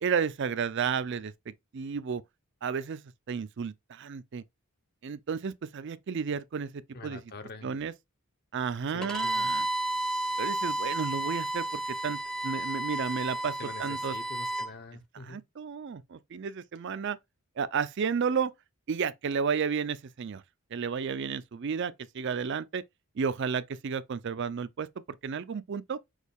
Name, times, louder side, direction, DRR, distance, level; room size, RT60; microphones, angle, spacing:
voice 1, 0.0-1.3 1.7-2.2 2.6-3.0 3.3-4.4 5.0-7.2 7.6-7.9 8.5-9.7 10.4-13.5 13.8-14.1 15.3-17.2 17.6-18.5 18.9-20.4 20.7-22.8 23.2-24.9 25.2-26.0, right 6 dB, 55° right, 0.4 m, -32 dB
voice 2, 6.9-7.8 8.9-9.6 13.6-15.4, left 3 dB, 45° left, 0.8 m, -45 dB
Bowed string instrument, 9.0-14.7, right 1 dB, 5° left, 0.6 m, -32 dB
6.3 x 2.3 x 3.4 m
head